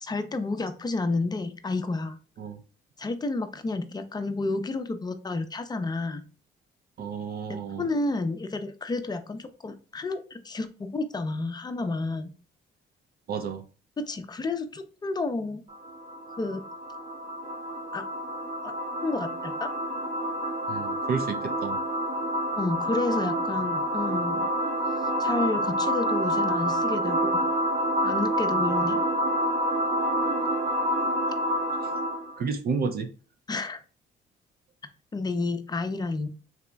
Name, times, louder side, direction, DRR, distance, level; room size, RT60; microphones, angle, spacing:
voice 1, 0.0-2.2 3.0-6.2 7.8-12.3 14.0-15.6 16.4-16.6 17.9-18.1 18.6-18.7 19.0-19.7 22.6-24.5 25.2-27.4 28.0-29.0 33.5-33.8 35.1-36.3, left 3 dB, 20° left, 0.5 m, -30 dB
voice 2, 7.0-7.9 13.3-13.6 20.7-21.8 32.4-33.1, right 5 dB, 50° right, 0.5 m, -31 dB
sound 1, 15.7-32.4, equal, 35° right, 1.0 m, -28 dB
4.1 x 2.9 x 2.2 m
cardioid pair, 90°, 20 cm